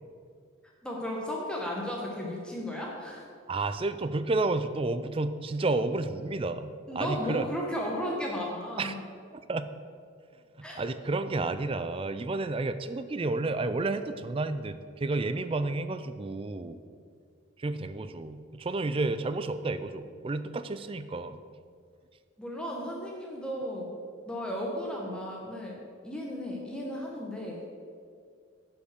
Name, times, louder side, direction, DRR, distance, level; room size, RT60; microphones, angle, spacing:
voice 1, 0.8-3.2 6.9-9.0 10.6-10.8 22.4-23.9 24.3-27.6, equal, 5° left, -2 dB, 1.1 m, -35 dB
voice 2, 3.5-7.5 8.8-8.9 9.3-9.7 10.6-16.8 17.6-21.4, right 2 dB, 25° right, 12 dB, 0.4 m, -31 dB
10.0 x 5.3 x 6.6 m, 2.2 s
head